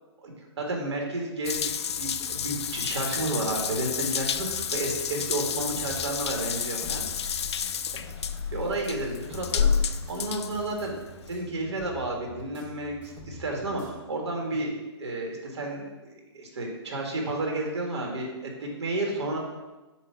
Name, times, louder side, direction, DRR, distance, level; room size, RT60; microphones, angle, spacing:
voice 1, 0.2-1.7 2.0-7.4 8.5-11.0 11.3-15.8 16.1-19.4, right 2 dB, 75° right, 1 dB, 1.6 m, -32 dB
Water tap faucet / Bathtub (filling or washing) / Drip, 1.4-11.3, left 7 dB, 70° left, 0.4 m, -30 dB
sound 1, 2.1-14.0, equal, 10° right, 0.8 m, -47 dB
7.8 x 2.7 x 5.7 m, 1.1 s
hypercardioid pair, 155°, 15 cm